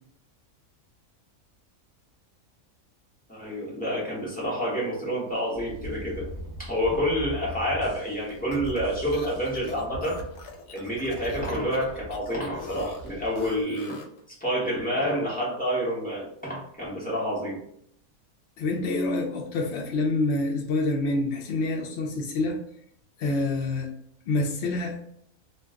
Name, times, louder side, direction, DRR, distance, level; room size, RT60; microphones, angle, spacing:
voice 1, 3.3-6.2 6.6-10.2 10.7-14.0 14.3-17.6, equal, 5° left, -5 dB, 0.8 m, -28 dB
sound 1, 5.5-13.6, right 1 dB, 25° right, 0.4 m, -41 dB
sound 2, 8.3-14.2, left 4 dB, 80° left, 1.0 m, -44 dB
voice 2, 18.6-22.6 23.2-23.9 24.3-25.1, left 2 dB, 60° left, 0 dB, 0.8 m, -27 dB
2.5 x 2.3 x 3.5 m, 0.70 s
omnidirectional pair, 1.5 m